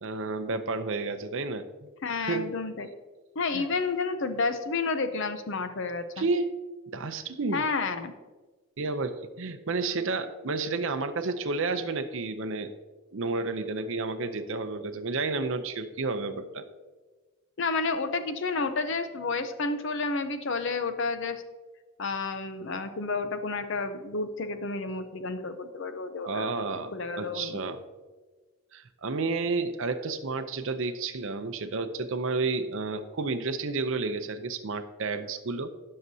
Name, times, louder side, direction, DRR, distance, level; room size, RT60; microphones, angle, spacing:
voice 1, 0.0-1.9 2.2-2.5 3.5-3.7 6.2-6.5 6.9-7.6 8.8-12.7 13.1-16.6 26.2-27.8 28.7-35.7, right 3 dB, 60° right, 9 dB, 0.6 m, -31 dB
voice 2, 2.0-2.9 3.4-6.3 7.5-8.1 17.6-21.4 22.0-26.5 26.9-27.6, left 4 dB, 55° left, 9 dB, 0.6 m, -30 dB
16.5 x 6.5 x 2.7 m, 1.3 s
head